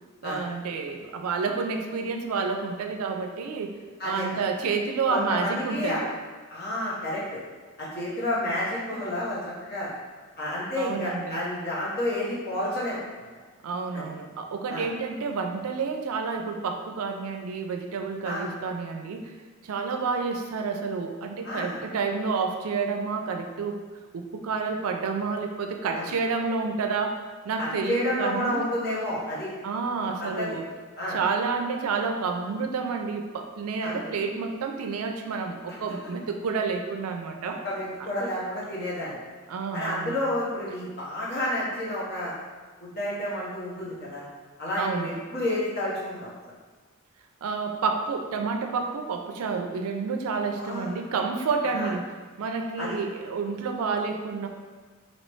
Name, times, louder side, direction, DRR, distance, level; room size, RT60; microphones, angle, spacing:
voice 1, 0.2-3.8 4.0-6.1 10.7-11.4 13.6-19.3 19.6-23.8 24.1-28.6 29.6-30.6 31.1-37.7 38.0-38.1 39.5-40.2 44.8-45.1 47.4-52.1 52.4-54.5, right 4 dB, 80° right, 4 dB, 0.4 m, -29 dB
voice 2, 5.1-6.0 6.5-7.4 7.8-9.9 10.4-13.0 13.9-14.1 14.7-14.8 18.2-18.4 21.4-21.8 25.9-26.0 27.6-29.5 30.2-30.6 31.0-31.2 33.8-34.1 37.4-39.2 39.7-42.3 42.8-44.2 44.6-46.3 50.6-50.9 51.7-51.9 52.8-52.9, left 1 dB, 50° left, -7 dB, 1.1 m, -30 dB
3.1 x 2.9 x 3.0 m, 1.4 s
head